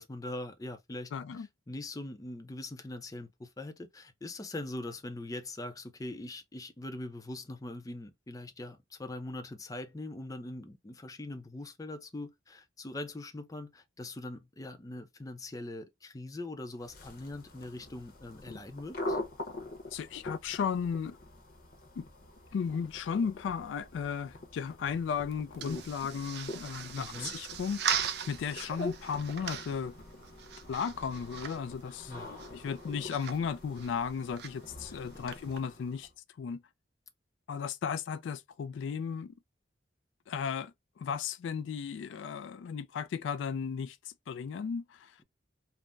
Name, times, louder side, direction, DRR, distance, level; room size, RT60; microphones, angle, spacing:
voice 1, 0.0-19.2 27.0-27.3 32.1-32.4 34.9-35.2, left 2 dB, 20° left, 0.4 m, -42 dB
voice 2, 1.1-1.5 19.9-21.2 22.0-22.1 22.5-29.9 30.7-36.1 36.4-36.6 37.5-39.3 40.3-45.2, left 6 dB, 80° left, 0.3 m, -35 dB
sound 1, 16.8-36.1, left 2 dB, 50° left, 0.8 m, -44 dB
sound 2, 24.7-35.6, right 8 dB, 60° right, 0.5 m, -40 dB
3.4 x 2.0 x 2.4 m
head